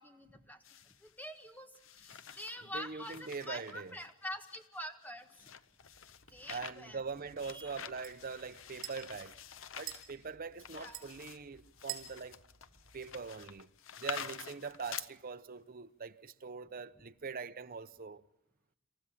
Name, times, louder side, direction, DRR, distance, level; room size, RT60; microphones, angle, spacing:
voice 1, 0.0-5.5 6.3-7.0 7.4-7.7 10.7-11.1, left 1 dB, 10° left, 1.6 m, -46 dB
sound 1, 0.6-1.2 1.7-2.6 3.0-15.1, left 8 dB, 75° left, 0.8 m, -48 dB
voice 2, 2.7-3.9 6.5-9.4 9.8-12.4 12.9-13.7 14.0-18.2, right 5 dB, 45° right, 0.8 m, -43 dB
sound 2, 5.8-13.6, right 12 dB, 75° right, 4.5 m, -51 dB
27.0 x 14.5 x 8.5 m
head